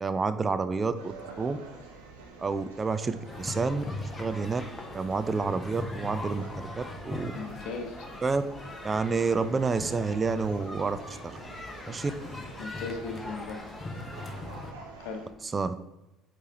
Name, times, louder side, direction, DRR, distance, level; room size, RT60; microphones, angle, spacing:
voice 1, 0.0-1.6 2.4-3.8 4.2-4.6 4.9-7.3 8.2-8.4 8.8-11.4 11.9-12.1 15.4-15.7, right 4 dB, 25° right, 11 dB, 0.4 m, -29 dB
sound 1, 0.9-15.3, right 4 dB, 75° right, 1.0 m, -48 dB
sound 2, 3.3-14.7, left 2 dB, 20° left, 1.0 m, -40 dB
voice 2, 7.3-8.1 12.6-13.6 15.0-15.2, left 4 dB, 60° left, 5 dB, 1.0 m, -37 dB
8.1 x 4.6 x 2.9 m, 0.96 s
figure-of-eight pair, 55°, 0 cm